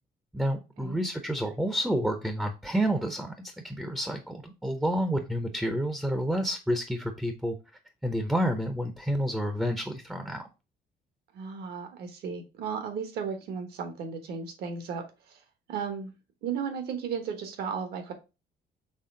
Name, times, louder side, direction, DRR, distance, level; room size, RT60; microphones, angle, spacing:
voice 1, 0.3-7.6 8.0-10.4, equal, 5° right, 6 dB, 0.5 m, -29 dB
voice 2, 11.3-15.0 15.3-15.4 15.7-16.1 16.4-18.1, right 6 dB, 70° right, 6 dB, 1.2 m, -34 dB
4.2 x 3.3 x 3.7 m, 0.28 s
cardioid pair, 110°, 17 cm